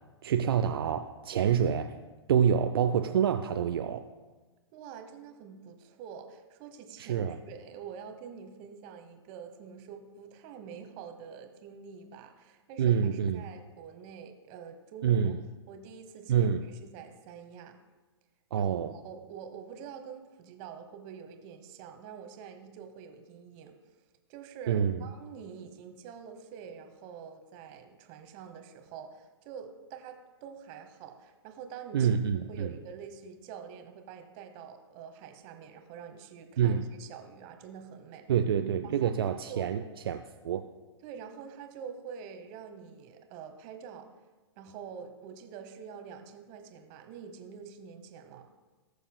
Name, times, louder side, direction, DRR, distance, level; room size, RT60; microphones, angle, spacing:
voice 1, 0.2-2.0 2.3-4.0 7.0-7.4 12.8-13.4 15.0-15.4 16.3-16.6 18.5-18.9 24.7-25.0 31.9-32.7 36.6-36.8 38.3-40.6, right 8 dB, 60° right, 7 dB, 0.5 m, -27 dB
voice 2, 4.7-15.4 15.7-17.8 18.6-23.7 24.3-38.2 38.8-39.1 39.5-39.7 41.0-44.1 44.6-48.5, right 7 dB, 35° right, 6 dB, 1.0 m, -46 dB
19.0 x 6.7 x 2.2 m, 1.2 s
figure-of-eight pair, 110°, 14 cm